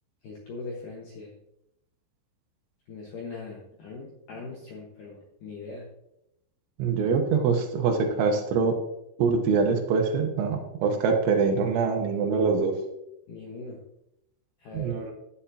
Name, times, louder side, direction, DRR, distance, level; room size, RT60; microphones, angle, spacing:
voice 1, 0.2-1.3 2.9-5.9 13.3-13.8 14.6-15.0, left 3 dB, 65° left, -2 dB, 2.3 m, -40 dB
voice 2, 6.8-8.7 9.2-12.7 14.7-15.1, right 5 dB, 85° right, 3 dB, 3.4 m, -24 dB
11.5 x 10.0 x 2.8 m, 0.84 s
omnidirectional pair, 5.2 m